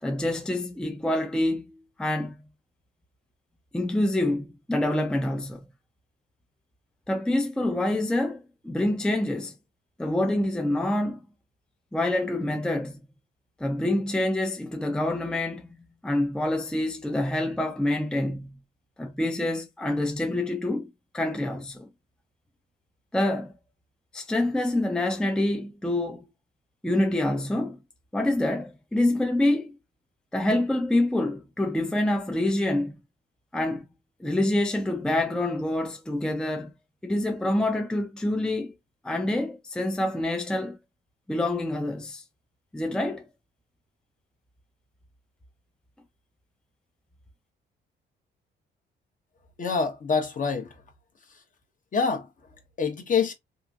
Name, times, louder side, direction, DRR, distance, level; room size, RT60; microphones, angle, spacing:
voice 1, 0.0-2.4 3.7-5.7 7.1-9.5 10.0-11.2 11.9-13.0 13.6-18.6 19.0-21.9 23.1-23.5 24.1-26.2 26.8-27.8 28.1-29.8 30.3-33.0 33.5-33.9 34.2-36.7 37.0-38.7 39.0-40.8 41.3-42.2 42.7-43.3, left 1 dB, 5° left, 0.5 m, -26 dB
voice 2, 49.6-50.7 51.9-52.3 52.8-53.3, left 5 dB, 40° left, 1.0 m, -25 dB
2.9 x 2.5 x 2.3 m
cardioid pair, 90°, 20 cm